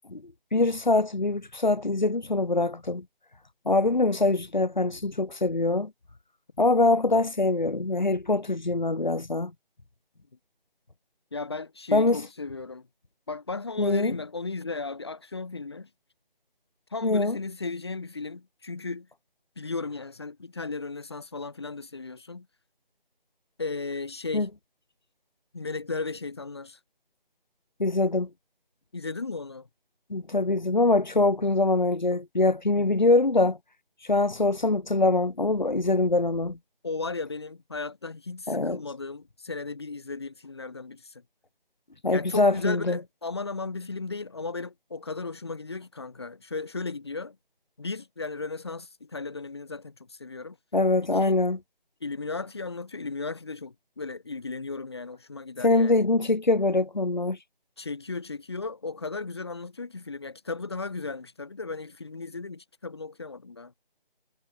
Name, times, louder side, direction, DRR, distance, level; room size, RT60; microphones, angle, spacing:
voice 1, 0.1-3.0 3.6-5.9 6.6-9.5 11.9-12.2 13.8-14.1 17.0-17.4 24.3-24.5 27.8-28.3 30.1-33.6 34.1-36.6 38.5-38.8 42.0-43.0 50.7-51.6 55.6-57.4, left 2 dB, 50° left, 4.5 m, -23 dB
voice 2, 11.3-12.9 13.3-15.9 16.9-19.1 19.6-22.5 23.6-24.5 25.5-26.8 28.9-29.7 32.8-32.9 36.8-41.2 42.1-47.4 47.8-50.6 51.1-51.4 52.0-56.0 57.8-63.7, left 3 dB, 25° left, 6.6 m, -35 dB
figure-of-eight pair, 180°, 29 cm